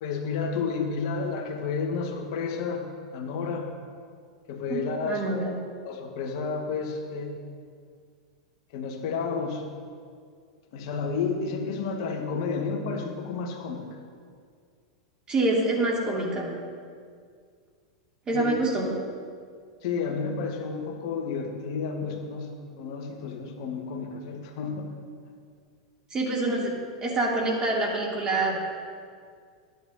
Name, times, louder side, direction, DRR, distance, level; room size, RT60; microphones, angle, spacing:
voice 1, 0.0-3.7 4.5-5.3 5.8-7.3 8.7-9.6 10.7-13.9 18.3-18.5 19.8-24.9, left 5 dB, 60° left, 2 dB, 1.5 m, -31 dB
voice 2, 4.7-5.5 15.3-16.5 18.3-18.9 26.1-26.7 27.0-28.6, right 2 dB, 25° right, -3 dB, 2.6 m, -26 dB
13.0 x 9.3 x 2.8 m, 2.1 s
hypercardioid pair, 95°, 3 cm